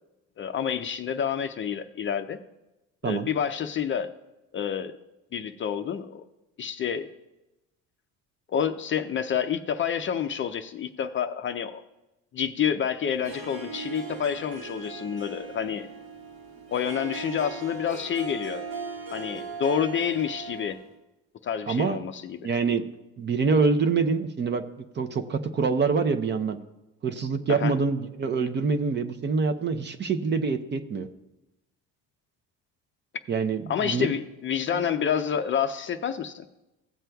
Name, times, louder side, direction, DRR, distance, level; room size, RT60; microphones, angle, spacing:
voice 1, 0.4-2.4 3.0-4.1 4.5-4.9 5.3-6.2 6.6-7.1 8.5-11.8 12.3-15.9 16.7-18.6 19.1-20.8 21.4-22.4 27.5-27.7 33.7-36.4, left 8 dB, 35° left, 8 dB, 0.5 m, -28 dB
Harp, 13.1-21.0, right 4 dB, 85° right, 1.7 m, -38 dB
voice 2, 21.7-22.0 22.4-22.8 23.2-24.6 25.0-26.6 27.0-31.1 33.3-34.1, right 4 dB, 30° right, 9 dB, 0.6 m, -25 dB
16.5 x 7.5 x 2.3 m, 0.98 s
cardioid pair, 120°, 36 cm